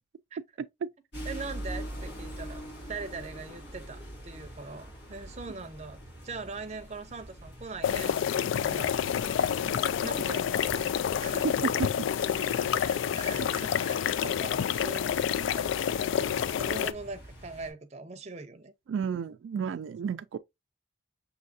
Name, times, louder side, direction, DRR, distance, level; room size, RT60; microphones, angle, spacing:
sound 1, 1.1-17.7, right 1 dB, 55° left, 2.3 m, -45 dB
voice 1, 1.2-9.0 10.0-11.5 12.3-18.7, right 4 dB, 35° right, 0.5 m, -42 dB
sound 2, 7.8-16.9, left 8 dB, 85° left, 0.3 m, -28 dB
voice 2, 18.9-20.4, right 7 dB, 80° right, 0.3 m, -32 dB
6.2 x 2.7 x 2.6 m
head